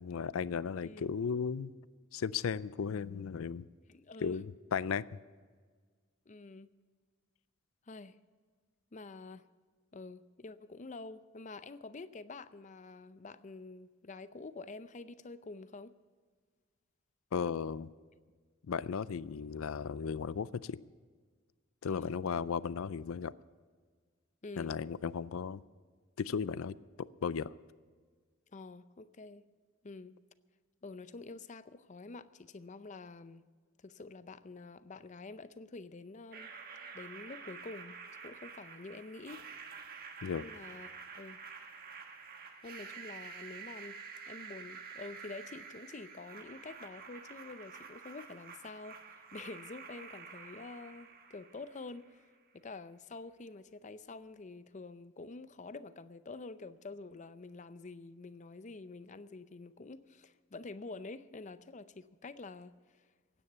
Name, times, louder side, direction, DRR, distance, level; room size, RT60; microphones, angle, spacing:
voice 1, 0.0-1.7 2.1-3.7 4.2-5.2 17.3-17.9 18.7-20.8 21.8-23.3 24.6-25.6 26.2-27.5 40.2-40.5, left 6 dB, 85° left, 0.4 m, -35 dB
voice 2, 0.8-1.1 3.9-4.4 6.3-6.7 7.9-8.2 8.9-9.5 9.9-15.9 21.9-22.2 24.4-24.8 28.5-29.4 29.8-30.2 30.8-33.4 33.8-36.5 36.9-38.0 38.2-39.5 40.4-41.4 42.6-44.0 44.3-52.3 52.5-63.0, left 3 dB, 35° left, 0.6 m, -48 dB
sound 1, 36.3-52.3, right 5 dB, 45° right, 1.4 m, -49 dB
16.0 x 9.8 x 6.8 m
head